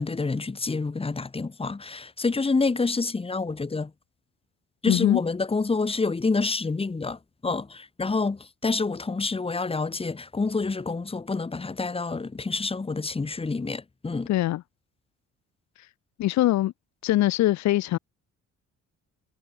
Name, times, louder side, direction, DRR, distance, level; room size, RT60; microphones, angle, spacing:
voice 1, 0.0-3.9 4.8-14.3, left 3 dB, 20° left, 1.2 m, -28 dB
voice 2, 4.9-5.2 14.3-14.6 16.2-16.7 17.0-18.0, left 15 dB, 65° left, 0.6 m, -22 dB
cardioid pair, 90°, 30 cm